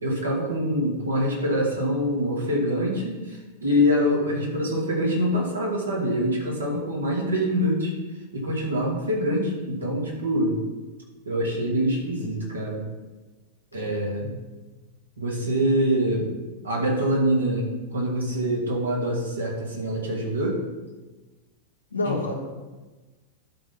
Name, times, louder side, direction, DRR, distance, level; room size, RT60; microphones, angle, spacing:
voice 1, 0.0-7.9 8.3-10.6 11.3-12.8 13.7-14.4 15.2-16.3 16.6-20.6 22.0-22.2, equal, 75° right, -3 dB, 2.4 m, -25 dB
voice 2, 13.7-14.2 21.9-22.4, left 2 dB, 85° left, 0 dB, 1.4 m, -29 dB
12.0 x 4.1 x 6.0 m, 1.2 s
figure-of-eight pair, 90°, 0 cm